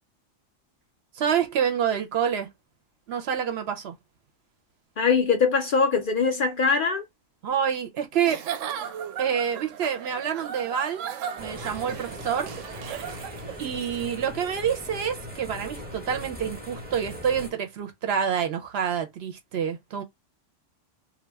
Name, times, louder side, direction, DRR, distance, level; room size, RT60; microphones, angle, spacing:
voice 1, 1.2-2.5 3.1-3.9 7.4-8.4 9.2-11.0 11.4-12.5 13.6-20.0, right 8 dB, 65° right, 0.8 m, -27 dB
voice 2, 5.0-7.0, left 5 dB, 60° left, 0.6 m, -22 dB
Giggle / Chuckle chortle, 8.2-13.7, right 9 dB, 90° right, 0.9 m, -36 dB
sound 1, 11.4-17.5, left 1 dB, 10° right, 0.6 m, -39 dB
2.2 x 2.1 x 3.3 m
omnidirectional pair, 1.3 m